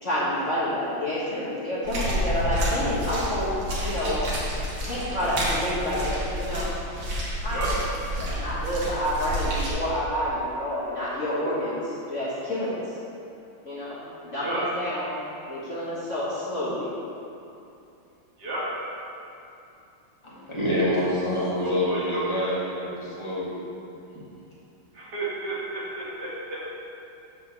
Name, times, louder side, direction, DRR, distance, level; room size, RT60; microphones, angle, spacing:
voice 1, 0.0-3.5 3.8-4.2 4.8-6.7 7.4-7.6 8.2-12.8 13.6-15.2 15.5-16.9, equal, 40° left, -10 dB, 1.3 m, -29 dB
sound 1, 1.8-9.7, equal, 85° right, 2.4 m, -29 dB
voice 2, 4.9-5.3 7.5-7.7 14.4-14.6 18.4-18.6 21.6-22.2 24.9-26.6, right 2 dB, 55° right, -7 dB, 2.0 m, -32 dB
voice 3, 20.2-23.6, left 1 dB, 15° left, -8 dB, 1.5 m, -27 dB
7.0 x 3.8 x 6.5 m, 2.7 s
omnidirectional pair, 2.3 m